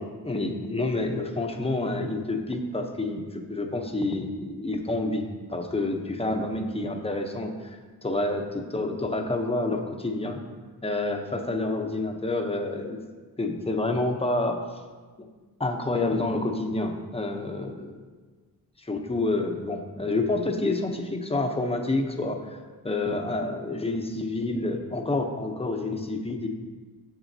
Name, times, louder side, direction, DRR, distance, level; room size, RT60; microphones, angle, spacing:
voice 1, 0.0-10.4 10.8-13.0 13.4-14.6 15.6-18.0 18.8-22.5 22.8-26.5, left 2 dB, 15° left, 3 dB, 0.7 m, -28 dB
9.0 x 6.9 x 2.7 m, 1.4 s
wide cardioid pair, 85°, 39 cm